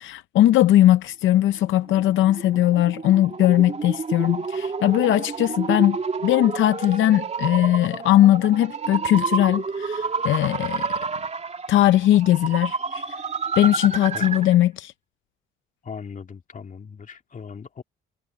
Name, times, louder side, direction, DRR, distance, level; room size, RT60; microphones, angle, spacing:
voice 1, 0.0-6.0 6.2-10.9 11.7-13.0 13.6-14.9, left 13 dB, 75° left, 0.6 m, -19 dB
sound 1, 1.8-14.6, right 5 dB, 35° right, 3.0 m, -30 dB
voice 2, 15.8-17.8, left 6 dB, 40° left, 2.8 m, -38 dB
cardioid pair, 90°, 20 cm